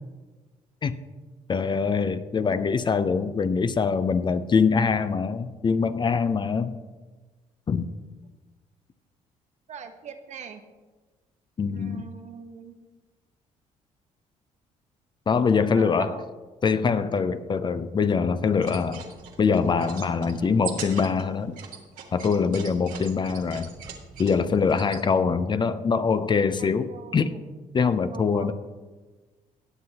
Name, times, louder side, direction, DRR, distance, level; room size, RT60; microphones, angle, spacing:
voice 1, 1.5-6.7 7.7-7.9 11.6-12.0 15.3-16.1 16.6-19.0 19.4-21.6 22.1-23.7 24.2-27.3 27.7-28.5, left 5 dB, 35° left, 12 dB, 0.5 m, -23 dB
voice 2, 9.7-10.6 11.7-12.8 15.7-16.3 25.0-25.1 26.6-27.4 27.8-28.5, right 6 dB, 55° right, 7 dB, 1.0 m, -42 dB
sound 1, 18.5-25.0, right 7 dB, 80° right, 1.4 m, -41 dB
17.5 x 7.6 x 2.8 m, 1.3 s
cardioid pair, 85°, 14 cm